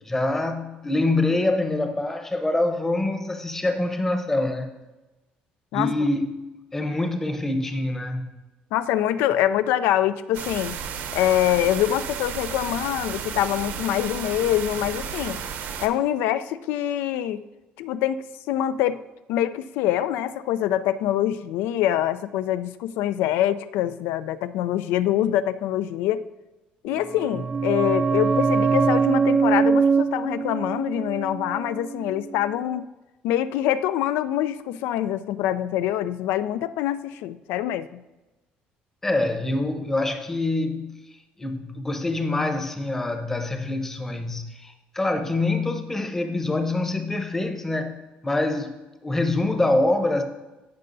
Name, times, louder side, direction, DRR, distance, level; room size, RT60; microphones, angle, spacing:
voice 1, 0.0-4.7 5.7-6.3 6.7-8.3 39.0-41.0 41.4-48.0 48.2-48.7 49.0-50.2, left 2 dB, 10° left, 0.8 m, -25 dB
voice 2, 8.7-10.8 11.1-15.4 15.8-17.4 17.8-19.0 19.3-26.2 26.8-32.8 33.2-38.0, left 12 dB, 90° left, 0.4 m, -25 dB
sound 1, 10.3-15.9, right 7 dB, 65° right, 0.8 m, -33 dB
sound 2, 26.9-32.4 32.6-32.7, right 5 dB, 25° right, 0.3 m, -23 dB
14.5 x 5.5 x 2.7 m
cardioid pair, 145°, 3 cm